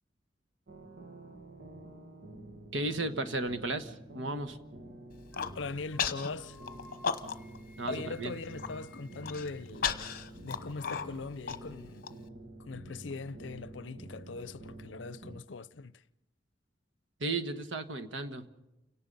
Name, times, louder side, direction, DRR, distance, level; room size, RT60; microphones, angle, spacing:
sound 1, 0.7-15.4, right 1 dB, 65° right, 1.8 m, -49 dB
voice 1, 2.7-4.6 7.8-8.4 17.2-18.5, right 2 dB, 85° right, 1.3 m, -34 dB
Human voice, 5.1-5.5 6.0-6.3 6.7-7.6 7.9-8.0 8.4-8.7 9.2-12.1, left 6 dB, 55° left, 1.1 m, -34 dB
sound 2, 5.3-5.6 5.9-6.1 6.4-9.8, left 2 dB, 15° left, 2.5 m, -57 dB
voice 2, 5.5-6.6 7.9-10.0 10.4-12.1 12.6-16.0, left 3 dB, 80° left, 0.6 m, -41 dB
29.5 x 18.0 x 5.4 m
head